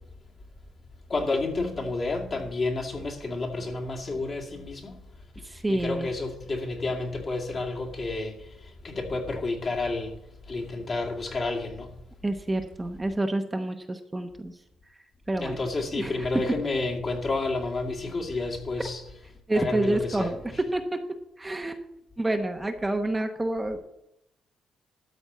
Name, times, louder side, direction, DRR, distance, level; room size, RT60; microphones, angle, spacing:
voice 1, 1.1-5.0 5.7-10.1 10.5-11.9 15.4-19.0 19.5-20.6, left 3 dB, 40° left, 2.2 m, -30 dB
voice 2, 5.4-6.1 12.2-14.5 15.3-15.6 16.0-16.3 19.5-21.0 21.4-21.8 22.2-23.8, right 1 dB, 15° right, 0.9 m, -28 dB
13.0 x 4.4 x 8.1 m
cardioid pair, 90°, 0 cm